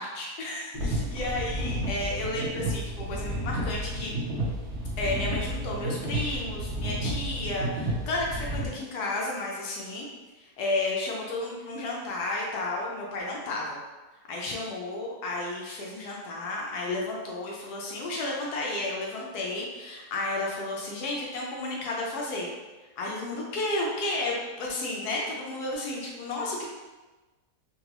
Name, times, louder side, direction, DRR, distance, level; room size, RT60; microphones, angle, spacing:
voice 1, 0.0-4.2 5.0-10.1 10.6-13.8 14.3-22.5 23.0-26.6, left 2 dB, 80° left, -2 dB, 1.1 m, -32 dB
sound 1, 0.7-8.7, right 1 dB, 65° right, 0.7 m, -31 dB
3.9 x 2.3 x 2.9 m, 1.2 s
omnidirectional pair, 1.7 m